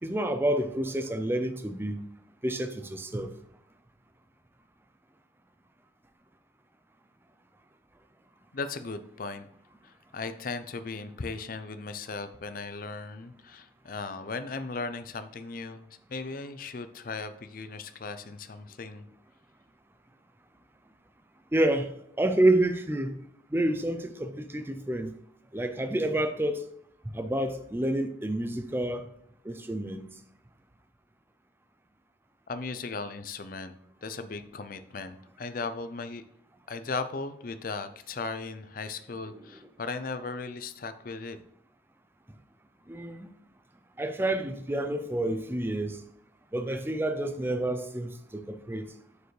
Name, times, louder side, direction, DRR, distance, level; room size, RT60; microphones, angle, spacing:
voice 1, 0.0-2.0 2.4-3.3 21.5-23.2 23.5-25.1 25.5-26.6 27.1-29.0 29.4-30.1 39.3-39.4 42.9-43.3 44.0-46.0 46.5-48.9, right 1 dB, 10° right, 8 dB, 0.5 m, -29 dB
voice 2, 8.5-9.5 9.8-19.1 32.5-33.8 34.0-36.2 36.7-41.4, left 4 dB, 50° left, 10 dB, 0.5 m, -37 dB
6.7 x 6.7 x 3.3 m, 0.70 s
head